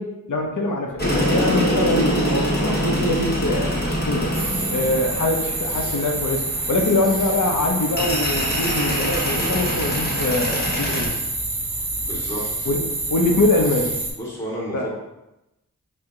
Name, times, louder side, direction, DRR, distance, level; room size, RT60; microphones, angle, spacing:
voice 1, 0.0-4.4 4.7-11.2 12.7-12.8 13.1-13.9 14.7-14.9, left 2 dB, 60° left, 2 dB, 0.7 m, -23 dB
sound 1, 1.0-11.1, equal, 30° left, 1.1 m, -25 dB
Ambience Night Wildlife A, 4.3-14.1, right 2 dB, 35° right, 1.2 m, -27 dB
voice 2, 12.1-12.7 14.2-15.0, equal, 5° left, -6 dB, 1.4 m, -31 dB
4.4 x 2.2 x 3.6 m, 0.94 s
cardioid pair, 45°, 34 cm